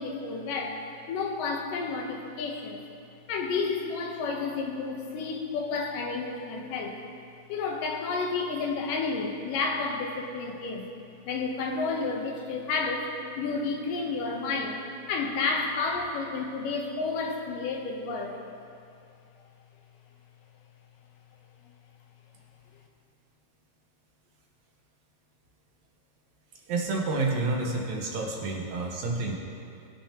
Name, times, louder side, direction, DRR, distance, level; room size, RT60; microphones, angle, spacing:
voice 1, 0.0-2.8 3.3-7.0 7.5-10.9 11.2-13.1 13.4-14.8 15.1-18.3, left 4 dB, 80° left, 2 dB, 2.6 m, -31 dB
voice 2, 26.7-29.4, right 3 dB, 65° right, -1 dB, 2.3 m, -29 dB
19.0 x 8.7 x 2.9 m, 2.5 s
omnidirectional pair, 3.8 m